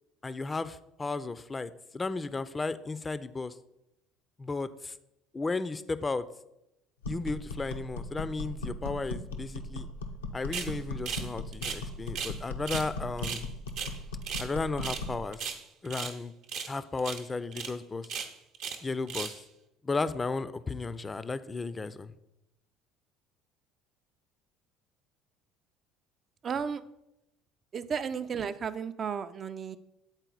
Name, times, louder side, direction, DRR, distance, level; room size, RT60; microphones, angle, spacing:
voice 1, 0.2-3.5 4.4-4.9 5.3-6.2 7.1-9.9 10.3-13.4 14.4-15.4 15.8-16.3 16.7-18.1 18.8-19.4 19.8-22.1, left 3 dB, 25° left, 14 dB, 0.4 m, -34 dB
sound 1, 7.0-15.2, left 2 dB, 85° left, 0.6 m, -38 dB
sound 2, 10.5-10.7 11.1-11.3 11.5-12.4 12.7-12.9 13.2-14.5 14.8-15.1 15.3-16.2 16.5-16.7 17.0-17.2 17.5-17.7 18.0-18.8 19.1-19.4, right 6 dB, 60° right, 0.8 m, -36 dB
voice 2, 26.4-26.8 27.7-29.8, right 6 dB, 40° right, 12 dB, 0.4 m, -33 dB
8.0 x 4.1 x 3.9 m, 0.88 s
hypercardioid pair, 65°, 0 cm